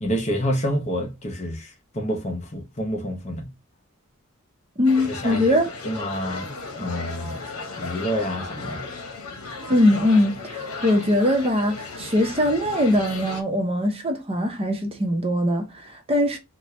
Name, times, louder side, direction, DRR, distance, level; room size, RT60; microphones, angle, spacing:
voice 1, 0.0-3.5 5.1-5.6 5.8-6.5 6.8-7.4 7.8-8.8, equal, 30° left, 0.8 m, -28 dB
voice 2, 4.8-5.6 9.7-16.4, left 1 dB, 25° right, 0.7 m, -21 dB
sound 1, 4.9-13.4, left 3 dB, 85° left, 0.9 m, -35 dB
4.1 x 2.2 x 3.0 m
head